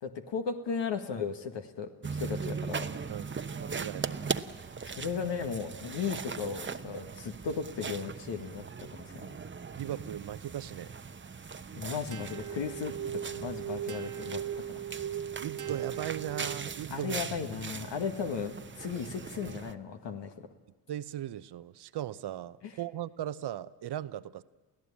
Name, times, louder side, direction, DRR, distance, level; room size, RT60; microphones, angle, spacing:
voice 1, 0.0-2.9 4.9-9.3 11.7-12.9 13.3-14.4 14.9-15.0 16.9-20.5, left 6 dB, 65° left, 5 dB, 1.9 m, -36 dB
sound 1, 2.0-19.7, right 5 dB, 25° right, 1.0 m, -40 dB
voice 2, 3.6-4.2 9.8-10.9 15.4-17.2 20.9-24.4, right 11 dB, 55° right, 15 dB, 0.9 m, -38 dB
sound 2, 12.1-16.9, right 10 dB, 40° right, 1.3 m, -38 dB
29.0 x 16.0 x 8.6 m, 1.3 s
supercardioid pair, 60°, 46 cm